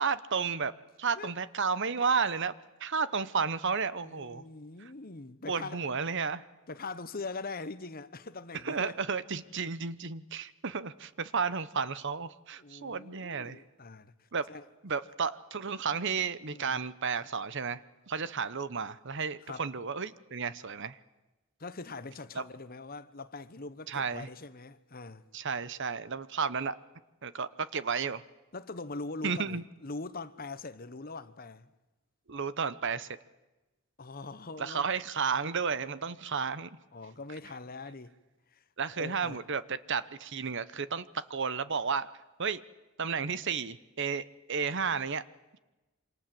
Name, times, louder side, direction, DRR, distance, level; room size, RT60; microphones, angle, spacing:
voice 1, 0.0-2.5 2.8-4.4 4.8-4.9 5.5-6.4 8.6-13.6 14.3-14.5 14.8-17.8 18.1-21.0 22.3-22.4 23.9-24.3 25.3-26.7 27.2-28.2 29.2-29.6 32.3-33.2 34.6-36.7 38.8-42.1 42.4-42.6 43.0-45.2, right 5 dB, 55° right, 0.9 m, -32 dB
voice 2, 4.0-5.8 6.7-9.0 12.6-14.7 16.5-16.8 19.4-19.7 21.6-25.2 28.5-31.7 34.0-34.8 36.9-38.2 38.5-38.6 39.0-39.4, left 3 dB, 40° left, 1.1 m, -42 dB
27.5 x 26.0 x 7.8 m
head